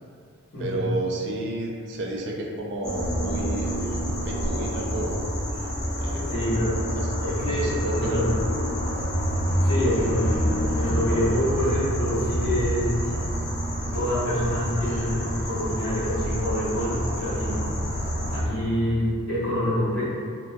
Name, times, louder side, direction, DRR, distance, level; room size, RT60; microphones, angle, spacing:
voice 1, 0.6-5.1 6.0-6.3 6.9-7.1 7.4-8.4, right 1 dB, 55° right, -1 dB, 0.3 m, -31 dB
sound 1, 2.8-18.4, equal, 30° left, 0.4 m, -27 dB
voice 2, 6.3-6.7 7.2-8.3 9.6-12.9 13.9-17.7 18.3-20.0, equal, 60° left, -10 dB, 0.9 m, -26 dB
2.3 x 2.2 x 2.5 m, 2.2 s
head